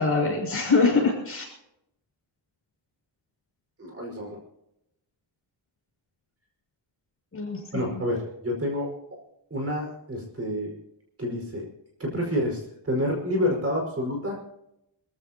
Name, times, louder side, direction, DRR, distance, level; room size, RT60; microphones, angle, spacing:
voice 1, 0.0-1.5 7.3-8.0, left 4 dB, 30° left, 0 dB, 6.7 m, -24 dB
voice 2, 3.8-4.4 7.7-8.9 9.5-10.7 11.2-11.7 12.0-14.4, equal, 30° right, 0 dB, 5.2 m, -28 dB
26.0 x 15.5 x 2.9 m, 0.82 s
wide cardioid pair, 175°, 45 cm